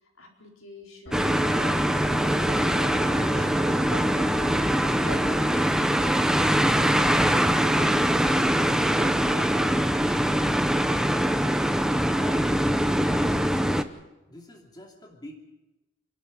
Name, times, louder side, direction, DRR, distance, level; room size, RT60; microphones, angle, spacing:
voice 1, 0.0-3.5 3.8-4.1 5.0-10.0, left 1 dB, 80° left, 1 dB, 4.3 m, -44 dB
sound 1, 1.1-6.4 6.8-7.0, equal, 60° left, 1.7 m, -42 dB
sound 2, 1.1-13.8, equal, 5° right, 0.8 m, -23 dB
voice 2, 11.4-11.7 12.1-12.6 13.0-13.7 14.3-15.4, left 1 dB, 20° left, 1 dB, 2.8 m, -44 dB
27.0 x 11.5 x 9.5 m, 1.0 s
head